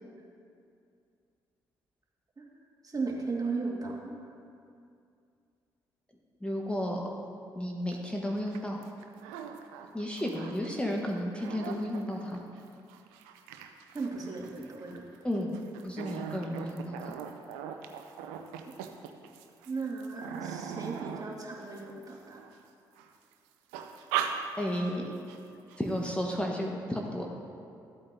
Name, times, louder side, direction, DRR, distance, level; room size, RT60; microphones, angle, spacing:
voice 1, 2.8-4.1 13.9-15.0 18.7-18.8 19.7-22.4, right 4 dB, 35° right, -1 dB, 1.8 m, -36 dB
voice 2, 6.4-7.0 7.5-8.8 9.9-12.4 15.2-15.6 15.8-17.1 24.6-25.1 25.8-27.4, equal, 10° left, -1 dB, 1.2 m, -33 dB
sound 1, 7.9-8.0 8.3-10.8 11.1-22.5 23.0-23.3 23.7-25.0 25.3-25.4 25.7-26.1, right 8 dB, 80° right, 0.5 m, -40 dB
14.0 x 8.4 x 2.7 m, 2.5 s
hypercardioid pair, 45°, 11 cm